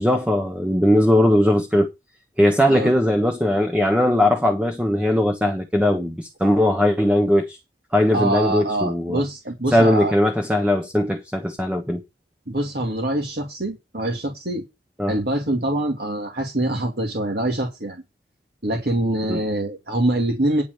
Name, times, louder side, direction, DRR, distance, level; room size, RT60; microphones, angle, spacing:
voice 1, 0.0-1.9 2.4-7.6 7.9-9.2 9.7-12.0 15.0-15.2 19.3-19.4, left 1 dB, 5° right, 1.2 m, -19 dB
voice 2, 8.1-10.1 12.5-14.7 15.1-18.0 18.6-20.6, right 1 dB, 60° right, 2.5 m, -24 dB
10.5 x 5.1 x 7.9 m
head